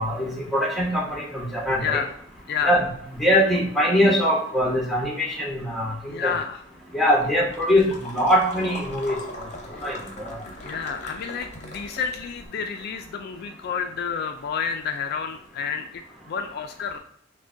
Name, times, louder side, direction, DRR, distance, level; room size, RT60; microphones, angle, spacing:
voice 1, 0.0-2.0 2.6-2.9 3.2-6.3 6.9-9.2 9.8-10.4, equal, ahead, -3 dB, 0.9 m, -22 dB
voice 2, 6.1-6.6 10.6-17.0, left 6 dB, 55° left, 7 dB, 0.3 m, -30 dB
sound 1, 7.2-12.5, left 1 dB, 35° left, 0.7 m, -39 dB
6.0 x 2.2 x 2.6 m, 0.67 s
head